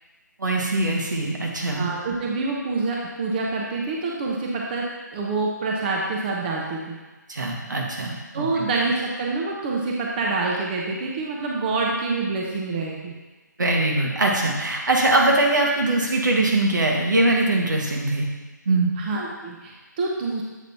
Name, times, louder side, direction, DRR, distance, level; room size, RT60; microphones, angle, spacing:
voice 1, 0.4-1.9 7.3-8.5 13.6-18.3 18.6-18.9, right 2 dB, 75° right, 0 dB, 1.6 m, -22 dB
voice 2, 1.7-4.8 5.1-7.0 8.3-13.1 19.0-20.4, right 3 dB, 30° right, -2 dB, 0.8 m, -26 dB
8.0 x 4.0 x 4.2 m, 1.3 s
figure-of-eight pair, 150°, 10 cm